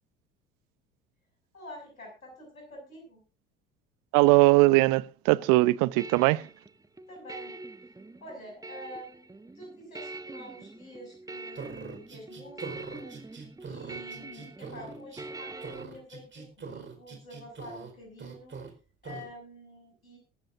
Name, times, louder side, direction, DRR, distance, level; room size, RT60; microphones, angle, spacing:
voice 1, 1.5-3.2 7.1-7.6 8.2-9.3 9.5-13.4 13.7-18.6 19.0-20.2, equal, 85° left, 6.7 m, -47 dB
voice 2, 4.1-6.5, right 21 dB, 50° right, 0.8 m, -21 dB
sound 1, 5.3-15.8, right 2 dB, 10° right, 1.1 m, -44 dB
sound 2, 11.5-15.3 15.6-17.9 18.2-18.7 19.0-19.3, right 5 dB, 30° right, 4.6 m, -42 dB
21.0 x 14.0 x 2.6 m
figure-of-eight pair, 65°, 41 cm